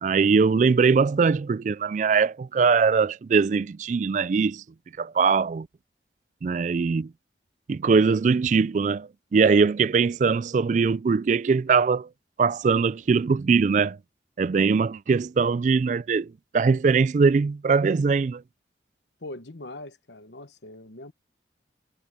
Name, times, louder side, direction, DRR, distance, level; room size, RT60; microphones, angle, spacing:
voice 1, 0.0-4.6 5.0-5.7 6.4-7.1 7.7-12.1 12.4-14.0 14.4-18.4, right 5 dB, 45° right, 0.3 m, -21 dB
voice 2, 19.2-21.1, left 2 dB, 80° left, 1.2 m, -41 dB
head